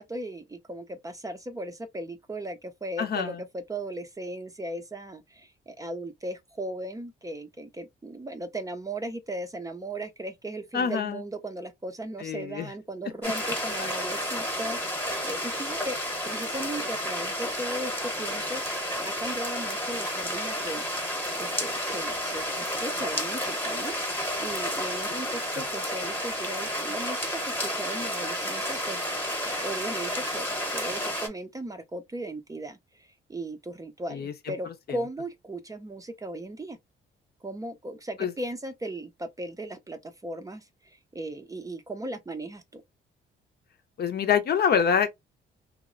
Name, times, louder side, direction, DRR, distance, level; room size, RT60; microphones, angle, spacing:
voice 1, 0.0-16.0 16.3-20.9 21.4-29.0 29.4-30.5 30.7-36.8 37.4-42.8, right 1 dB, 15° right, 0.5 m, -37 dB
voice 2, 3.0-3.4 10.7-11.2 12.2-12.7 13.8-13.9 25.6-25.7 34.1-34.5 38.2-38.3 44.0-45.1, left 7 dB, 55° left, 0.6 m, -26 dB
sound 1, 13.2-31.3, equal, 10° left, 1.0 m, -31 dB
2.9 x 2.0 x 2.4 m
cardioid pair, 90°, 20 cm